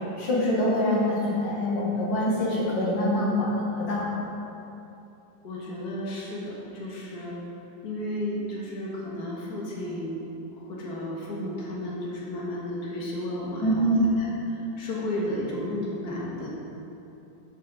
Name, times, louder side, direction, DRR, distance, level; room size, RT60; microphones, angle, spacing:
voice 1, 0.2-4.1 13.6-14.1, left 1 dB, 85° left, -6 dB, 2.4 m, -25 dB
voice 2, 5.4-7.3 7.8-10.2 10.5-13.9 14.2-16.5, left 1 dB, 60° left, -5 dB, 2.0 m, -33 dB
8.3 x 5.6 x 6.5 m, 2.9 s
omnidirectional pair, 2.0 m